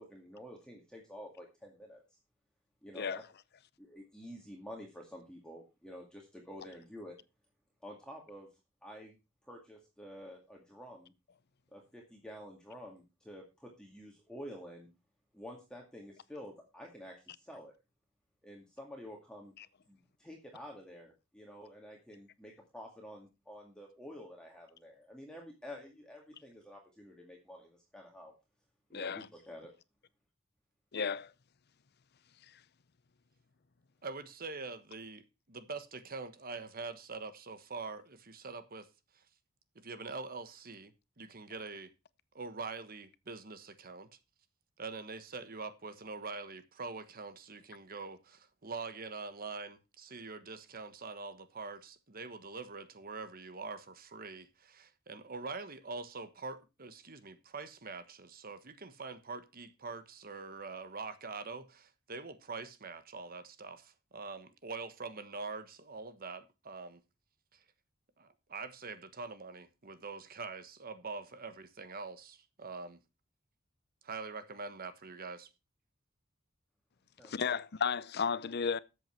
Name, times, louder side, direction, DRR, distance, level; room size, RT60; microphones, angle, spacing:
voice 1, 0.0-2.0 2.8-3.2 3.8-7.2 7.8-8.5 8.8-9.2 9.4-11.1 11.7-14.9 15.3-17.7 18.4-19.5 19.9-28.3 28.9-29.7 77.2-77.6, equal, 5° left, 2.2 m, -49 dB
voice 2, 28.9-29.3 30.9-31.3 32.4-32.6 77.2-78.8, left 6 dB, 55° left, 0.7 m, -34 dB
voice 3, 34.0-35.2 35.5-38.9 39.1-39.2 39.7-40.9 41.2-41.9 42.3-44.1 44.8-67.0 67.5-67.6 68.2-73.0 74.0-75.5, right 4 dB, 45° right, 1.3 m, -44 dB
13.0 x 8.1 x 4.6 m
head